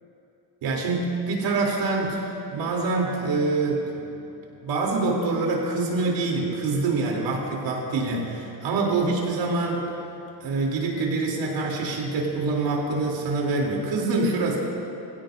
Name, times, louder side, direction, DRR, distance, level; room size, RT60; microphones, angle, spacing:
voice 1, 0.6-4.1 4.6-9.8 10.4-14.6, right 3 dB, 90° right, -2 dB, 3.4 m, -25 dB
24.0 x 16.0 x 2.7 m, 2.9 s
cardioid pair, 165°, 43 cm